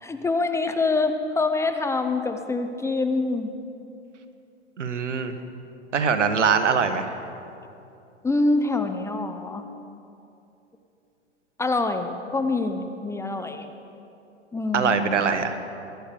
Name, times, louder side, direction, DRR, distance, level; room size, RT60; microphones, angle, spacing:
voice 1, 0.0-3.5 8.2-9.6 11.6-13.7 14.5-15.2, left 3 dB, 10° left, 7 dB, 0.8 m, -25 dB
voice 2, 4.8-5.3 5.9-7.2 14.7-15.6, right 6 dB, 85° right, 9 dB, 1.4 m, -22 dB
22.5 x 10.5 x 5.1 m, 2.7 s
hypercardioid pair, 115°, 35 cm